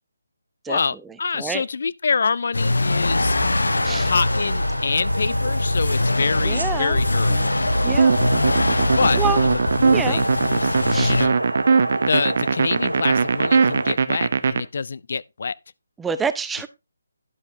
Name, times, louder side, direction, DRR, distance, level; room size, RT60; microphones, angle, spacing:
voice 1, 0.7-3.4 4.0-7.6 9.0-11.4 12.1-15.6, left 5 dB, 55° left, 0.4 m, -26 dB
sound 1, 2.5-11.3, left 2 dB, 70° left, 0.9 m, -22 dB
sound 2, 3.6-14.0, right 1 dB, 85° right, 0.8 m, -29 dB
voice 2, 6.4-7.0 7.3-7.5 7.8-8.2 9.2-9.4 9.9-10.2 10.9-11.1 16.0-16.7, right 6 dB, 5° right, 0.5 m, -27 dB
sound 3, 7.9-14.6, right 5 dB, 50° right, 0.7 m, -20 dB
11.0 x 8.1 x 2.7 m
figure-of-eight pair, 150°, 0 cm